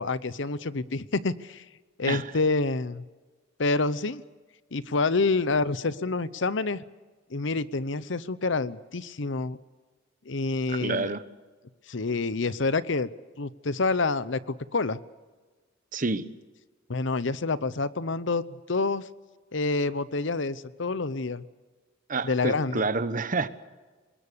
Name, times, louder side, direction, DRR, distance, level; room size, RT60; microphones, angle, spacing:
voice 1, 0.0-1.6 2.0-3.0 3.6-4.2 4.7-6.8 7.3-9.6 10.3-11.1 11.9-13.1 13.4-15.0 16.9-19.0 19.5-21.4 22.2-22.8, left 3 dB, 70° left, 17 dB, 0.9 m, -27 dB
voice 2, 10.7-11.2 15.9-16.3 22.1-23.5, right 3 dB, 45° right, 13 dB, 1.1 m, -28 dB
25.5 x 21.5 x 6.9 m, 1.3 s
head